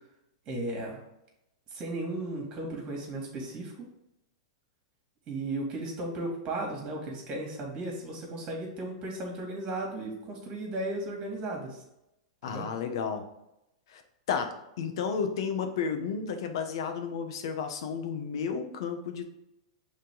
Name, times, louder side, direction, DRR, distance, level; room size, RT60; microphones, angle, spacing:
voice 1, 0.5-1.0 1.7-3.8 5.3-11.8 12.4-12.7, right 2 dB, 30° right, 0 dB, 2.3 m, -35 dB
voice 2, 12.4-13.3 13.9-14.0 14.3-19.3, left 6 dB, 65° left, 6 dB, 1.0 m, -32 dB
6.6 x 3.7 x 3.8 m, 0.86 s
hypercardioid pair, 125°, 3 cm